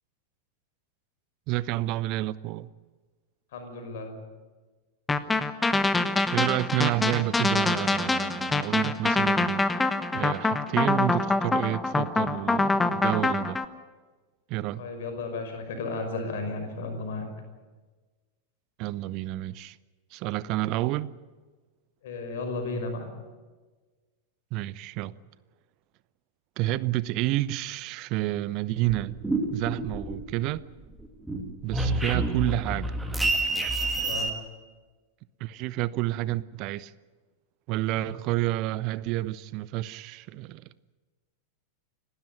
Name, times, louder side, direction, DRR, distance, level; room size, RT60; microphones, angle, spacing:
voice 1, 1.5-2.7 6.3-9.7 10.1-13.6 14.5-14.8 18.8-19.8 20.1-21.1 24.5-25.1 26.6-29.2 29.5-30.6 31.6-32.9 35.4-36.9 37.7-40.6, right 16 dB, 40° right, 0.7 m, -29 dB
voice 2, 3.5-4.2 14.8-17.3 22.0-23.1 34.0-34.3 38.0-38.1, left 3 dB, 55° left, 5.4 m, -34 dB
sound 1, 5.1-13.6, left 3 dB, 10° left, 1.2 m, -25 dB
sound 2, 28.9-30.6 30.9-34.3, right 2 dB, 5° right, 2.4 m, -28 dB
29.5 x 12.5 x 9.3 m
figure-of-eight pair, 90°, 0 cm